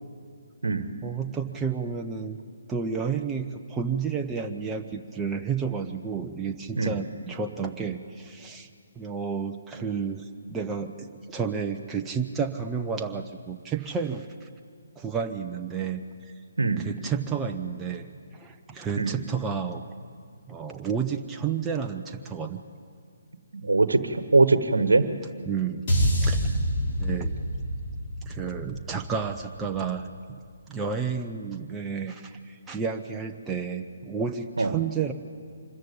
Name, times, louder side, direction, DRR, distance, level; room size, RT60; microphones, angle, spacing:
voice 1, 1.0-2.4 2.7-8.7 9.0-14.5 15.0-16.0 16.8-18.1 18.3-19.9 20.5-22.6 25.5-26.6 27.0-27.3 28.2-30.1 30.7-35.1, right 6 dB, 10° right, 3 dB, 0.7 m, -31 dB
voice 2, 23.6-25.0 34.6-34.7, right 3 dB, 70° right, 11 dB, 1.2 m, -21 dB
sound 1, 25.9-30.2, equal, 40° left, 5.7 m, -27 dB
25.0 x 14.0 x 8.6 m, 2.2 s
figure-of-eight pair, 140°, 0 cm